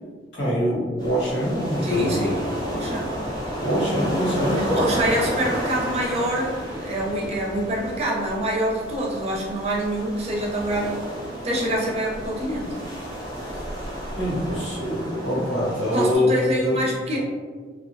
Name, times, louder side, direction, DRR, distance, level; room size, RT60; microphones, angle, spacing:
voice 1, 0.3-2.2 3.6-4.7 14.2-16.8, equal, 85° left, -8 dB, 1.3 m, -24 dB
sound 1, 1.0-16.1, equal, 20° left, 0.6 m, -32 dB
voice 2, 1.8-2.4 2.6-3.1 4.6-11.0 11.4-12.8 15.9-17.2, right 1 dB, 35° right, -3 dB, 0.6 m, -25 dB
2.5 x 2.3 x 2.6 m, 1.5 s
head